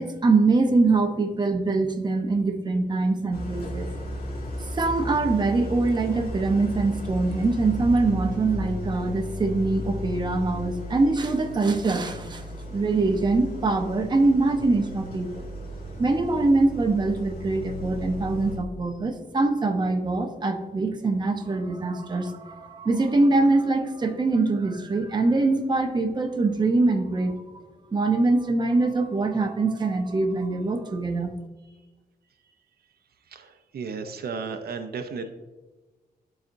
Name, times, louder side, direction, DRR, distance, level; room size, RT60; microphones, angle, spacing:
voice 1, 0.0-3.9 4.7-12.5 12.7-15.4 16.0-27.4 27.9-31.3, right 3 dB, 30° right, 4 dB, 0.7 m, -23 dB
Idling, 3.3-18.6, equal, 80° left, 1.6 m, -35 dB
voice 2, 33.3-35.3, right 5 dB, 85° right, 7 dB, 0.6 m, -34 dB
11.5 x 4.1 x 2.6 m, 1.2 s
wide cardioid pair, 150°, 16 cm